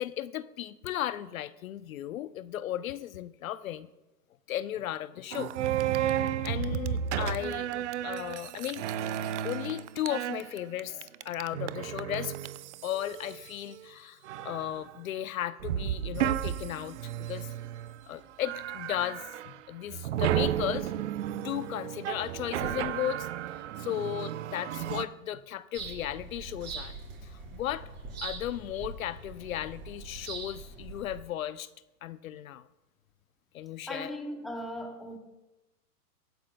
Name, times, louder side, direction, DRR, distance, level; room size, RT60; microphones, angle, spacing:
voice 1, 0.0-3.9 4.5-5.7 6.4-8.8 9.4-12.3 12.8-17.5 18.1-23.3 23.8-27.0 27.2-27.9 28.2-31.7 32.0-32.7 33.5-34.1, left 12 dB, 60° left, 14 dB, 0.6 m, -35 dB
sound 1, 5.3-13.8 14.2-14.9 15.6-18.0 18.4-19.6 19.9-25.1, right 11 dB, 50° right, 0.6 m, -33 dB
sound 2, 25.7-31.2, right 4 dB, 20° right, 4.1 m, -42 dB
voice 2, 33.9-35.2, equal, ahead, 2 dB, 0.7 m, -38 dB
23.5 x 9.2 x 2.2 m, 1.0 s
hypercardioid pair, 140°, 48 cm